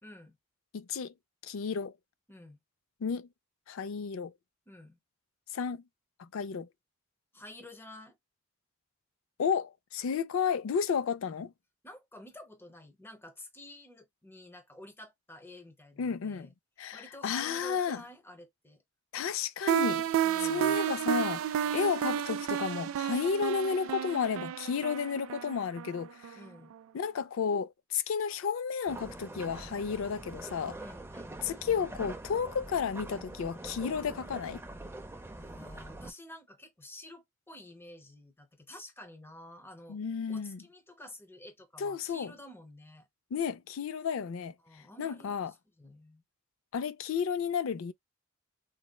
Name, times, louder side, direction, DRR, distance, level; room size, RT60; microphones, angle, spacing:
voice 1, 0.0-0.4 2.3-2.6 4.7-5.0 7.3-8.2 11.8-16.5 16.9-18.8 20.2-20.8 26.3-26.8 30.0-30.2 30.7-31.4 35.4-40.0 40.3-43.1 44.6-46.2, left 1 dB, 10° left, 0.8 m, -50 dB
voice 2, 0.7-1.1 1.4-1.9 3.0-3.3 3.7-4.3 5.5-5.8 6.2-6.7 9.4-11.5 16.0-16.5 16.8-18.0 19.1-20.1 20.4-26.4 26.9-30.8 31.4-34.6 39.9-40.6 41.8-42.3 43.3-44.5 45.0-45.5 46.7-47.9, left 6 dB, 70° left, 0.4 m, -32 dB
sound 1, 19.7-26.4, right 10 dB, 80° right, 0.3 m, -31 dB
sound 2, 28.9-36.1, right 2 dB, 10° right, 0.4 m, -44 dB
4.0 x 2.1 x 2.2 m
head